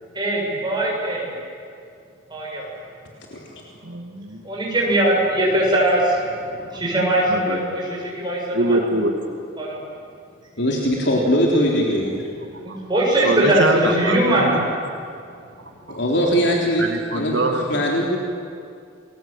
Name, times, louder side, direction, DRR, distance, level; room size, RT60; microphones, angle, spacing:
voice 1, 0.1-1.3 2.3-2.7 4.4-7.8 8.2-8.8 9.6-9.8 12.6-14.7, right 1 dB, 20° right, -3 dB, 7.8 m, -21 dB
voice 2, 3.8-4.4 7.3-7.6 8.5-9.2 12.7-12.8 13.2-14.6 16.8-17.9, right 1 dB, 65° right, 3 dB, 2.3 m, -23 dB
voice 3, 10.6-12.1 15.9-17.4 17.7-18.2, equal, 60° left, -2 dB, 3.6 m, -20 dB
29.5 x 21.5 x 9.0 m, 2.4 s
head